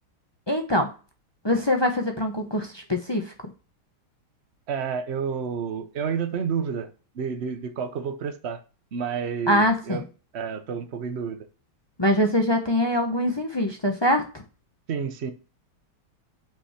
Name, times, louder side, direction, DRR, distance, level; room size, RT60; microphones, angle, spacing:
voice 1, 0.5-0.9 1.4-3.3 9.5-10.0 12.0-14.4, left 1 dB, 35° left, 0.4 m, -23 dB
voice 2, 4.7-8.6 8.9-10.0 10.3-11.5 14.9-15.3, right 6 dB, 60° right, 0.7 m, -30 dB
5.6 x 5.3 x 5.7 m
omnidirectional pair, 2.2 m